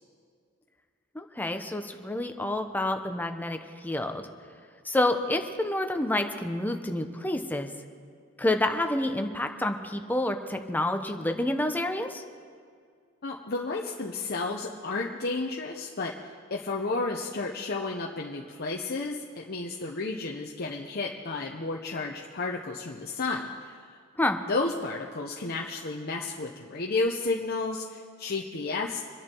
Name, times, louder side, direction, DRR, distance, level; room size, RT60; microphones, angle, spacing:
voice 1, 1.1-4.3 4.8-7.7 8.4-12.2 24.2-24.4, left 1 dB, 10° left, 5 dB, 0.9 m, -28 dB
voice 2, 13.2-16.1 16.5-24.0 24.5-29.0, left 3 dB, 45° left, -1 dB, 0.9 m, -32 dB
25.5 x 10.5 x 4.6 m, 2.1 s
head